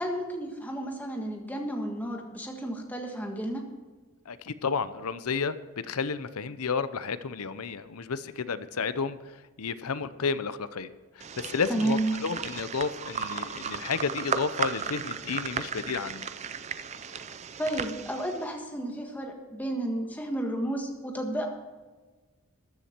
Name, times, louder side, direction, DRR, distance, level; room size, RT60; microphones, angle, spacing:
voice 1, 0.0-3.6 11.7-12.1 17.1-17.3 17.6-21.5, right 1 dB, 5° left, 2 dB, 1.6 m, -32 dB
voice 2, 4.3-9.2 9.6-10.9 11.2-16.3, left 5 dB, 85° left, 14 dB, 0.7 m, -31 dB
sound 1, 11.2-18.5, right 6 dB, 30° right, 0.5 m, -35 dB
14.0 x 10.5 x 4.5 m, 1.3 s
head